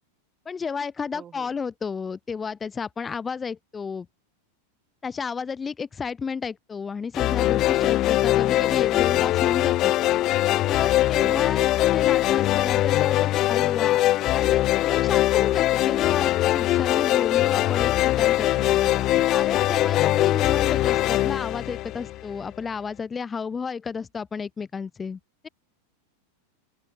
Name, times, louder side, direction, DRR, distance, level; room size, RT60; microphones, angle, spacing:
voice 1, 0.5-4.1 5.0-9.9 10.7-14.0 14.3-18.6 19.3-25.5, left 5 dB, 15° left, 2.4 m, -32 dB
voice 2, 1.1-1.5 11.2-11.8 18.5-19.4, right 9 dB, 25° right, 2.5 m, -43 dB
sound 1, 7.1-22.4, left 15 dB, 35° left, 0.7 m, -22 dB
open air
figure-of-eight pair, 90°, 0 cm